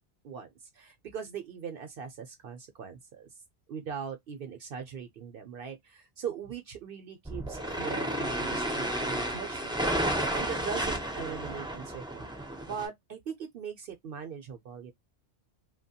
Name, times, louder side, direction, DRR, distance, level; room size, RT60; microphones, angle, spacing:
voice 1, 0.2-3.3 3.7-12.3 12.7-14.9, right 7 dB, 65° right, 0.7 m, -40 dB
sound 1, 7.2-12.9, right 1 dB, 5° right, 0.4 m, -32 dB
2.9 x 2.2 x 2.7 m
omnidirectional pair, 1.1 m